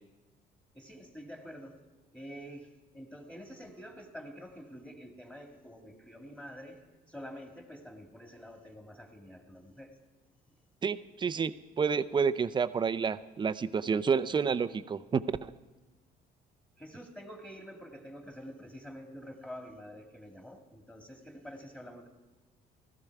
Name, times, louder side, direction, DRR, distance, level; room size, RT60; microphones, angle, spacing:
voice 1, 0.7-1.8 2.1-6.8 7.1-9.9 16.8-22.1, equal, 5° left, 3 dB, 2.2 m, -47 dB
voice 2, 10.8-15.5, right 6 dB, 25° right, 12 dB, 0.5 m, -29 dB
15.5 x 14.0 x 4.7 m, 1.2 s
cardioid pair, 110°, 17 cm